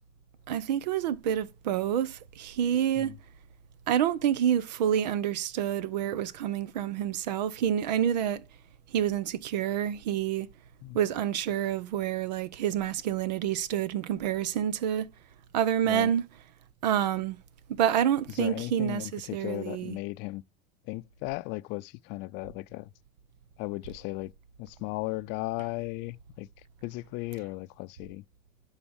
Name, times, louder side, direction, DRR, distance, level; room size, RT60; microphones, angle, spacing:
voice 1, 0.5-3.2 3.9-8.4 8.9-10.5 10.9-15.1 15.5-16.3 16.8-17.4 17.7-20.0, right 10 dB, 85° right, 0.8 m, -28 dB
voice 2, 18.4-20.4 20.9-22.9 23.6-24.3 24.6-26.5 26.8-28.2, left 22 dB, 55° left, 0.5 m, -36 dB
10.5 x 4.1 x 7.2 m
supercardioid pair, 110°, 21 cm